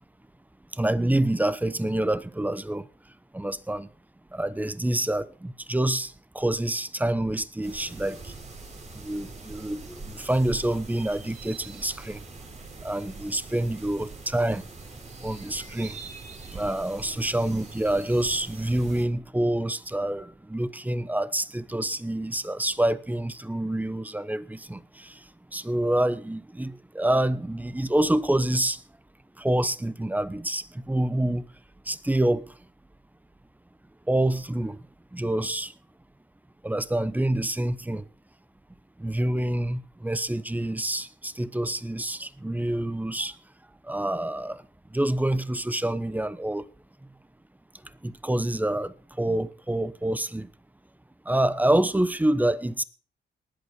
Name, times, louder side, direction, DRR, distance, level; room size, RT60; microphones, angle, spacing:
voice 1, 0.8-2.8 3.3-3.9 4.3-8.2 8.9-12.2 12.8-14.6 15.2-16.0 16.5-25.1 25.5-28.8 29.4-31.4 31.9-32.4 34.1-34.8 35.1-35.7 36.6-38.0 39.0-43.3 43.9-44.6 44.9-46.7 48.0-50.5 51.3-52.8, right 1 dB, 10° right, 0.9 m, -27 dB
sound 1, 7.6-19.1, right 3 dB, 40° right, 4.1 m, -43 dB
19.5 x 8.3 x 5.3 m
cardioid pair, 85°, 18 cm